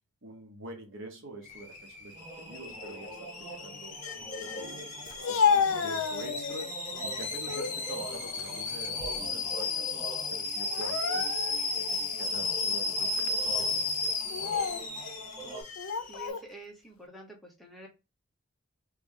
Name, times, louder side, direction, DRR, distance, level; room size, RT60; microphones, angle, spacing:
voice 1, 0.2-4.0 4.5-6.7 7.0-11.3 11.7-14.8, right 2 dB, 60° right, 1.0 m, -46 dB
Alarm / Boiling, 1.4-16.3, left 3 dB, 35° left, 1.0 m, -34 dB
sound 1, 2.1-15.6, right 1 dB, 20° right, 1.6 m, -44 dB
Speech, 5.1-6.7 7.2-7.8 8.2-9.4 9.7-9.9 10.7-11.7 12.2-12.4 13.2-13.4 14.2-14.9 15.8-16.4, left 6 dB, 80° left, 0.5 m, -30 dB
voice 2, 16.1-17.9, right 2 dB, ahead, 0.9 m, -48 dB
3.3 x 3.1 x 3.7 m
head